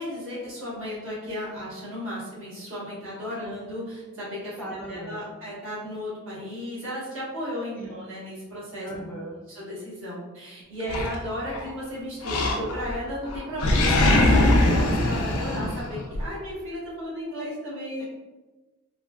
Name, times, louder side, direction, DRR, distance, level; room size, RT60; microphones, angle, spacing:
voice 1, 0.0-4.6 4.9-8.9 9.5-18.0, left 1 dB, 60° right, -7 dB, 1.3 m, -34 dB
voice 2, 4.6-5.3 7.8-8.0 8.8-9.4 18.0-18.1, right 1 dB, 10° left, -5 dB, 0.5 m, -38 dB
Animal, 10.9-11.7 12.2-13.0 13.3-16.2, left 1 dB, 70° left, 0.4 m, -22 dB
3.2 x 2.4 x 2.3 m, 1.2 s
head